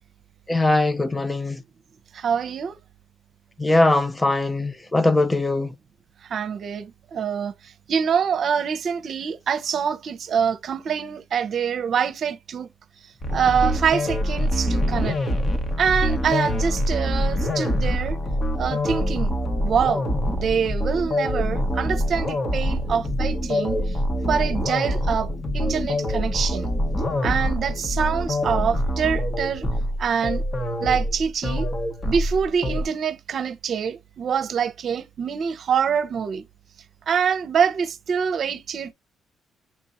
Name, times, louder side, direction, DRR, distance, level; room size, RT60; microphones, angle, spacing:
voice 1, 0.5-1.6 3.6-5.7, left 2 dB, 20° left, 0.4 m, -21 dB
voice 2, 2.1-2.8 6.3-7.5 7.9-12.7 13.3-15.2 15.8-18.2 18.6-19.4 19.6-24.0 24.3-26.7 27.2-29.7 30.0-30.4 30.8-31.7 32.1-36.4 37.1-38.9, right 7 dB, 60° right, 0.7 m, -25 dB
sound 1, 13.2-32.8, equal, 35° left, 1.1 m, -25 dB
6.0 x 2.8 x 2.5 m
cardioid pair, 90°, 0 cm